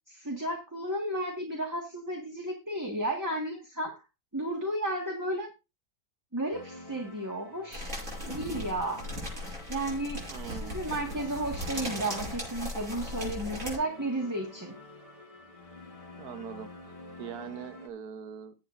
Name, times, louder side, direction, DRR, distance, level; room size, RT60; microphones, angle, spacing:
voice 1, 0.1-3.9 4.3-5.5 6.3-8.0 8.3-9.1 9.7-14.7, right 1 dB, 10° right, 1.6 m, -33 dB
sound 1, 6.5-17.9, left 2 dB, 20° left, 1.8 m, -48 dB
sound 2, 7.7-13.8, equal, 60° right, 7.2 m, -38 dB
voice 2, 10.3-10.8 16.2-18.5, right 8 dB, 80° right, 1.5 m, -42 dB
19.0 x 8.2 x 2.6 m
omnidirectional pair, 1.6 m